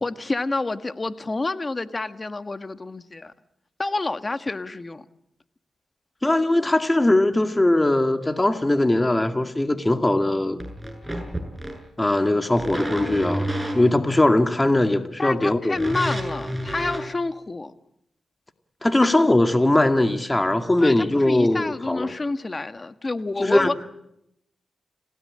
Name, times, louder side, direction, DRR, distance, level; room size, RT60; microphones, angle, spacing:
voice 1, 0.0-3.3 3.8-5.0 15.2-17.7 20.8-23.7, left 3 dB, 35° left, 1.7 m, -28 dB
voice 2, 6.2-10.6 12.0-15.8 18.8-22.1 23.4-23.7, left 1 dB, 20° left, 2.2 m, -20 dB
sound 1, 10.6-11.8 12.5-14.3 15.7-17.1, equal, 5° right, 7.6 m, -30 dB
29.5 x 17.5 x 8.8 m
cardioid pair, 55°, 0 cm